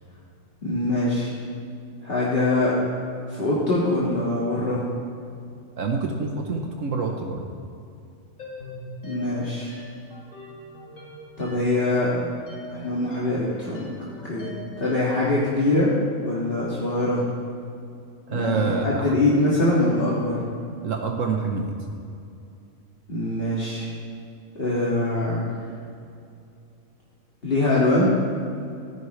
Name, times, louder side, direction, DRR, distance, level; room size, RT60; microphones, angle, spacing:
voice 1, 0.6-1.3 2.0-2.8 3.3-4.8 9.0-9.8 11.4-12.1 12.7-13.9 14.2-14.5 14.8-15.9 16.2-17.2 18.3-20.4 23.1-23.9 24.6-25.5 27.4-28.0, left 2 dB, 45° left, -7 dB, 2.1 m, -23 dB
voice 2, 5.8-7.4 18.3-19.1 20.8-21.7, right 4 dB, 70° right, 2 dB, 1.3 m, -27 dB
sound 1, 8.4-15.2, equal, 90° left, 3.1 m, -41 dB
15.5 x 14.0 x 3.2 m, 2.5 s
omnidirectional pair, 1.4 m